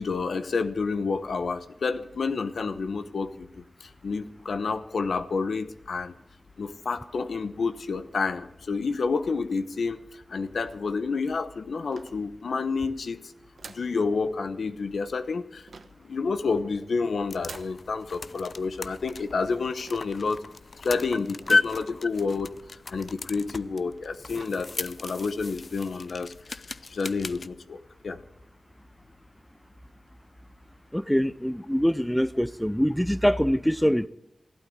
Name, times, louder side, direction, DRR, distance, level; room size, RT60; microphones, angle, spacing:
voice 1, 0.0-3.3 4.0-6.1 6.6-10.0 10.3-13.2 13.7-15.6 16.0-20.4 20.8-22.5 22.9-26.3 26.9-27.8 28.0-28.2, left 4 dB, 85° left, 0.9 m, -29 dB
sound 1, 11.9-12.7 13.6-14.0 15.7-16.1 17.4-17.8 19.9-20.2 21.4-21.8 22.3-22.4 22.6-22.7 23.5-23.6 24.0-24.1 24.3-24.7 25.0-25.3, right 4 dB, 80° right, 1.1 m, -47 dB
sound 2, 17.0-27.5, left 3 dB, 60° left, 0.5 m, -34 dB
voice 2, 30.9-34.1, equal, 5° left, 0.5 m, -24 dB
15.0 x 8.9 x 9.5 m
wide cardioid pair, 60°, 0 cm